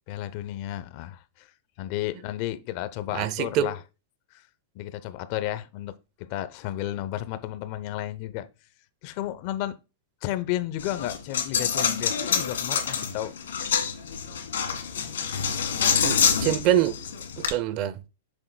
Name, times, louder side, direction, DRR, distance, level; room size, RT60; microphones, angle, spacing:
voice 1, 0.1-1.5 1.8-3.8 4.3-4.4 4.7-5.9 6.2-8.5 9.0-9.8 10.2-13.3, left 13 dB, 45° left, 0.7 m, -32 dB
voice 2, 3.1-3.8 16.0-16.9 17.4-18.0, right 11 dB, 40° right, 0.6 m, -25 dB
Coin (dropping), 10.8-17.5, left 7 dB, 85° left, 1.9 m, -26 dB
7.6 x 6.3 x 2.3 m
hypercardioid pair, 145°, 0 cm